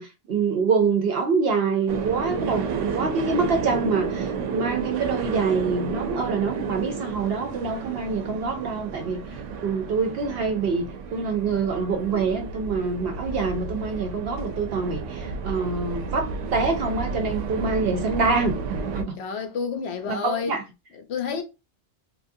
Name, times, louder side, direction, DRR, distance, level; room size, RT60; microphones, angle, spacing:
voice 1, 0.0-9.2 9.6-19.2 20.1-20.6, right 4 dB, 65° right, 0.7 m, -26 dB
sound 1, 1.9-19.0, right 5 dB, 85° right, 0.9 m, -31 dB
voice 2, 19.2-20.5 21.1-21.4, left 6 dB, 65° left, 0.8 m, -29 dB
3.0 x 2.4 x 2.5 m
omnidirectional pair, 1.2 m